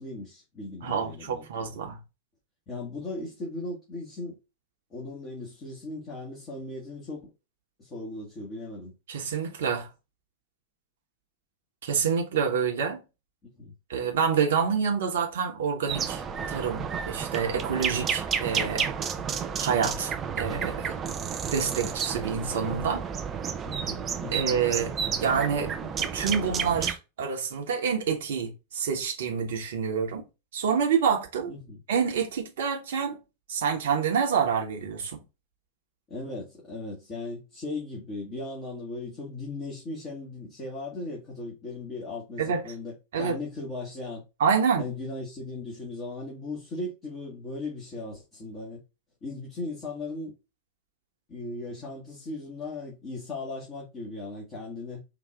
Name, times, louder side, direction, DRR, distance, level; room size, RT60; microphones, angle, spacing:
voice 1, 0.0-1.8 2.7-4.4 4.9-7.3 7.8-8.9 13.4-13.7 19.1-19.4 23.7-24.5 31.5-31.8 36.1-44.2 44.8-48.8 49.2-50.3 51.3-55.0, left 2 dB, 30° left, 2.0 m, -37 dB
voice 2, 0.8-2.0 9.1-9.9 11.8-13.0 13.9-16.2 16.5-18.9 19.6-20.9 21.5-23.0 24.3-24.9 25.2-30.2 30.5-31.5 31.9-33.2 33.5-35.2 42.4-42.6 43.1-43.4 44.4-44.9, right 6 dB, 60° right, 1.2 m, -27 dB
sound 1, 15.9-26.9, right 7 dB, 25° right, 0.6 m, -31 dB
5.0 x 3.0 x 3.3 m
figure-of-eight pair, 90°, 0 cm